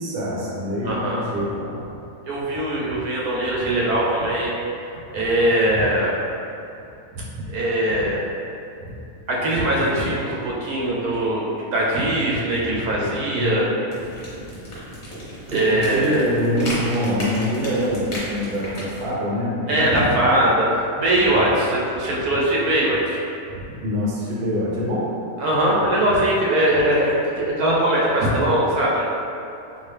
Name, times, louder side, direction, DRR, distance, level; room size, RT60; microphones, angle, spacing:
voice 1, 0.0-1.8 13.3-13.6 15.5-19.9 23.8-25.1, equal, 50° right, -5 dB, 0.8 m, -24 dB
voice 2, 0.8-1.2 2.3-4.5 5.1-6.2 7.1-7.2 7.5-8.2 9.3-13.7 15.5-16.2 19.7-20.7 21.0-23.2 23.5-23.6 25.4-29.0, right 1 dB, 90° right, -5 dB, 1.2 m, -21 dB
sound 1, 13.9-19.1, equal, 35° left, 1.0 m, -33 dB
3.8 x 2.4 x 3.3 m, 2.7 s
omnidirectional pair, 1.5 m